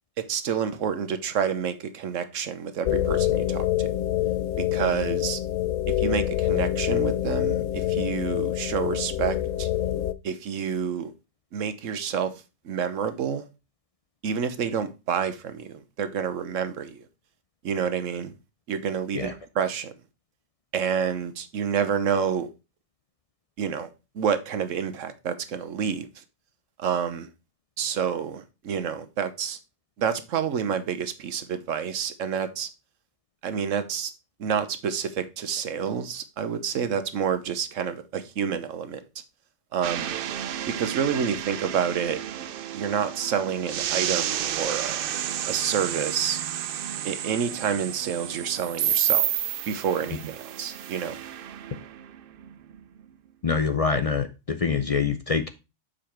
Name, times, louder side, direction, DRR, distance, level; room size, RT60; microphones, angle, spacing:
voice 1, 0.2-3.9 4.6-5.4 6.0-9.7 10.2-11.1 11.5-12.3 12.6-13.5 14.2-17.0 17.6-18.3 18.7-19.9 20.7-22.5 23.6-23.9 24.1-26.2 26.8-27.3 27.8-29.6 30.0-32.7 33.4-34.1 34.4-39.0 39.7-40.2 40.8-42.2 42.7-45.1 45.5-46.4 47.0-49.3 49.7-51.2, right 7 dB, 85° right, 1.2 m, -28 dB
sound 1, 2.9-10.1, left 12 dB, 85° left, 1.0 m, -26 dB
sound 2, 39.8-52.8, right 10 dB, 60° right, 0.6 m, -31 dB
voice 2, 53.4-55.5, left 5 dB, 40° left, 0.5 m, -25 dB
7.0 x 5.1 x 4.4 m
omnidirectional pair, 1.3 m